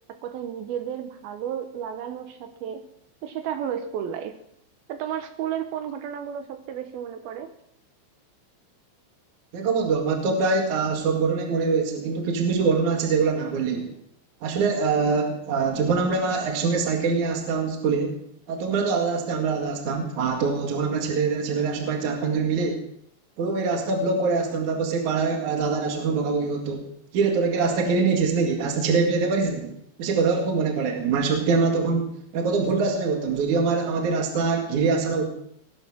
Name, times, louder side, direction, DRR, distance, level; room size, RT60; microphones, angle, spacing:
voice 1, 0.1-2.9 3.2-4.4 4.9-7.5, right 9 dB, 85° right, 8 dB, 2.1 m, -32 dB
voice 2, 9.5-13.9 14.4-18.2 18.5-22.8 23.4-29.7 30.0-35.3, right 4 dB, 50° right, 3 dB, 2.6 m, -24 dB
19.5 x 11.5 x 6.1 m, 0.69 s
omnidirectional pair, 5.8 m